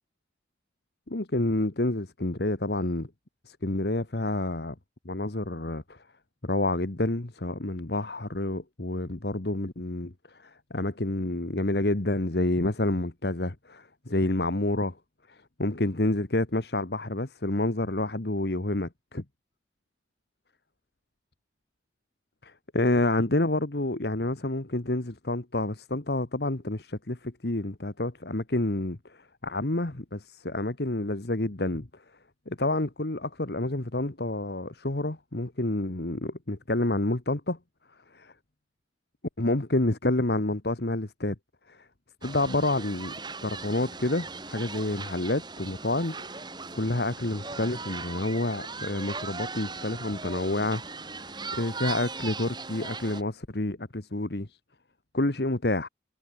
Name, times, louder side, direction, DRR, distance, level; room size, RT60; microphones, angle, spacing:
voice 1, 1.1-3.1 3.5-4.7 5.0-6.0 6.4-10.1 10.4-15.0 15.3-19.2 22.4-31.9 32.5-37.6 38.1-38.3 39.4-41.3 41.7-41.9 42.2-43.1 43.4-46.4 46.7-50.8 51.3-54.5 55.1-55.9, left 2 dB, 60° left, 1.5 m, -29 dB
sound 1, 42.2-53.2, right 4 dB, 25° right, 7.8 m, -39 dB
head